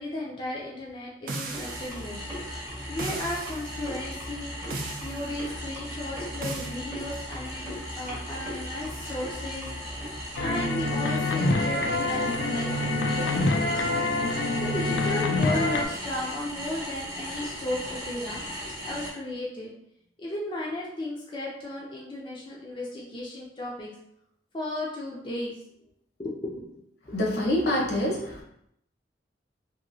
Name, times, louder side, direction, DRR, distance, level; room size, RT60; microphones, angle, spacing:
voice 1, 0.0-2.2 2.9-4.5 5.0-9.7 10.0-10.1 10.4-13.8 14.6-18.4 18.8-19.7 20.2-23.9 24.5-25.6 26.2-26.7, left 1 dB, 30° left, -4 dB, 0.5 m, -35 dB
sound 1, 1.3-2.1 3.0-3.7 4.7-5.3 6.4-6.7, right 3 dB, 50° right, 0.4 m, -36 dB
sound 2, 1.4-19.1, equal, 15° right, 0.8 m, -37 dB
sound 3, 10.4-15.9, left 2 dB, 85° left, 0.4 m, -26 dB
voice 2, 27.1-28.4, left 1 dB, 65° left, -2 dB, 0.8 m, -26 dB
3.0 x 2.7 x 2.6 m, 0.75 s
head